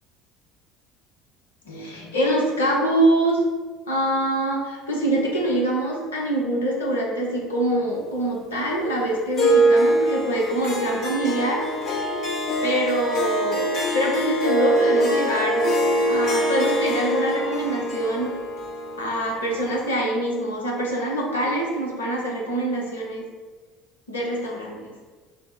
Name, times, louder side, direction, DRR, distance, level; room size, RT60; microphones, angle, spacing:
voice 1, 1.7-3.4 3.9-11.7 12.6-13.7 13.9-15.6 16.0-18.3 19.0-23.2 24.1-24.9, right 1 dB, 75° left, -1 dB, 0.8 m, -24 dB
Harp, 9.4-19.9, right 1 dB, 50° left, 0.9 m, -23 dB
5.6 x 2.1 x 3.9 m, 1.4 s
figure-of-eight pair, 60°, 0 cm